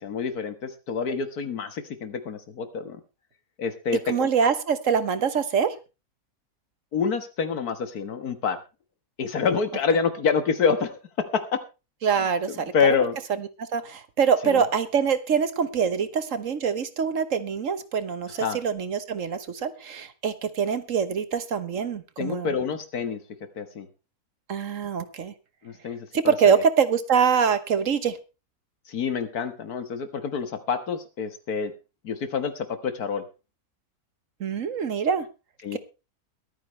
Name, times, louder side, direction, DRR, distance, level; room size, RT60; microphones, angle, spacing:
voice 1, 0.0-3.0 3.6-4.3 6.9-8.6 9.2-11.6 12.7-13.2 14.4-14.6 18.3-18.6 22.2-23.2 23.6-23.9 25.6-26.5 28.9-31.7 32.0-33.2 35.6-35.8, left 6 dB, 90° left, 9 dB, 2.0 m, -27 dB
voice 2, 4.1-5.7 12.0-13.0 13.4-22.5 24.5-25.3 26.1-28.2 34.4-35.3 35.7-35.8, right 6 dB, 60° right, 12 dB, 1.4 m, -24 dB
22.0 x 9.2 x 3.2 m, 0.29 s
omnidirectional pair, 1.6 m